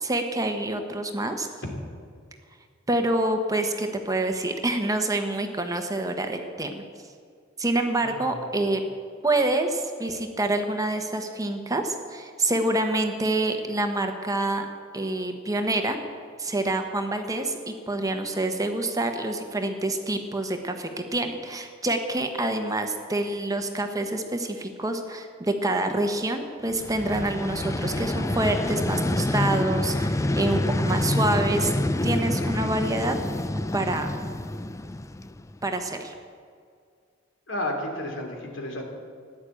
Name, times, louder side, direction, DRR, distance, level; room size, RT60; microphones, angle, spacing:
voice 1, 0.0-1.5 2.9-6.8 7.6-8.8 9.2-14.7 14.9-16.0 16.4-31.7 32.0-33.2 33.7-34.1 35.6-36.1, right 2 dB, 20° right, 5 dB, 1.1 m, -27 dB
voice 2, 8.0-8.3 37.5-38.8, left 1 dB, 70° left, 2 dB, 2.9 m, -32 dB
Vehicle, 26.7-35.7, left 1 dB, 15° left, 0.4 m, -27 dB
15.0 x 10.5 x 8.5 m, 2.1 s
head